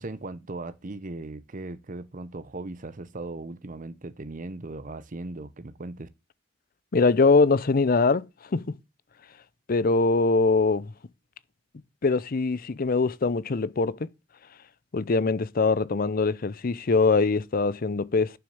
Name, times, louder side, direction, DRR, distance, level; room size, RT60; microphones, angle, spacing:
voice 1, 0.0-6.1, right 2 dB, 45° right, 0.8 m, -38 dB
voice 2, 6.9-8.2 8.5-8.8 9.7-10.9 12.0-14.1 14.9-18.4, left 4 dB, 50° left, 0.6 m, -22 dB
7.0 x 6.5 x 7.1 m
head